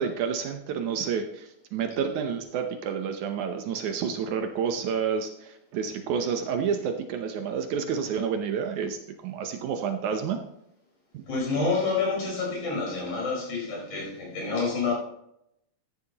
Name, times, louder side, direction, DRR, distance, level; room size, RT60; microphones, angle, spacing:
voice 1, 0.0-10.4, right 7 dB, 75° right, 5 dB, 2.1 m, -29 dB
voice 2, 11.3-14.9, left 4 dB, 55° left, -4 dB, 5.9 m, -28 dB
14.5 x 10.0 x 2.9 m, 0.78 s
omnidirectional pair, 3.8 m